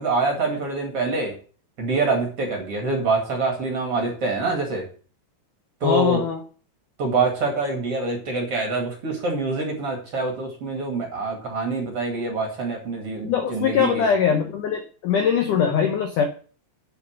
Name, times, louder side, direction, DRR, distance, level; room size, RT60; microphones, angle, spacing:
voice 1, 0.0-1.3 1.8-4.8 5.8-6.3 7.0-14.1, right 3 dB, 40° right, 1 dB, 2.6 m, -25 dB
voice 2, 5.8-6.4 13.2-16.3, left 7 dB, 75° left, 4 dB, 1.9 m, -21 dB
8.3 x 7.1 x 6.4 m, 0.40 s
omnidirectional pair, 4.9 m